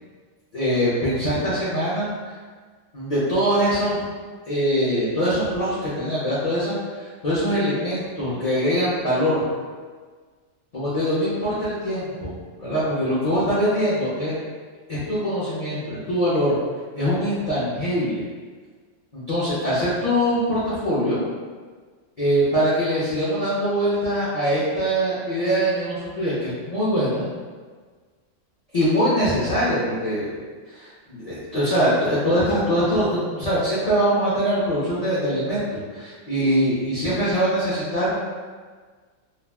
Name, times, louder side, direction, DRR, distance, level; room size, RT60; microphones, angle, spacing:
voice 1, 0.5-2.1 2.9-4.0 4.5-6.8 7.2-9.4 10.7-12.3 12.6-14.4 14.9-16.5 16.9-18.2 19.1-21.2 22.2-27.3 28.7-30.4 30.7-38.2, equal, 40° left, -11 dB, 0.6 m, -23 dB
2.4 x 2.2 x 3.4 m, 1.5 s
omnidirectional pair, 1.4 m